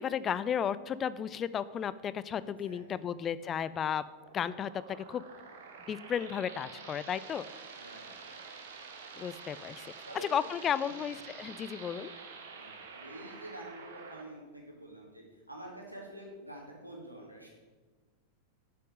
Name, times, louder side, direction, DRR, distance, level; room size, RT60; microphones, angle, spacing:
voice 1, 0.0-4.0 4.3-5.2 5.9-7.5 9.2-9.9 10.3-12.1, left 8 dB, 25° left, 16 dB, 0.4 m, -34 dB
voice 2, 2.6-3.1 3.4-3.5 7.8-8.4 10.1-10.6 10.8-11.0 12.5-17.5, right 1 dB, 85° right, -1 dB, 1.9 m, -48 dB
sound 1, 4.2-14.2, right 5 dB, 60° right, 1.2 m, -48 dB
7.9 x 5.9 x 6.2 m, 1.3 s
figure-of-eight pair, 90°, 0 cm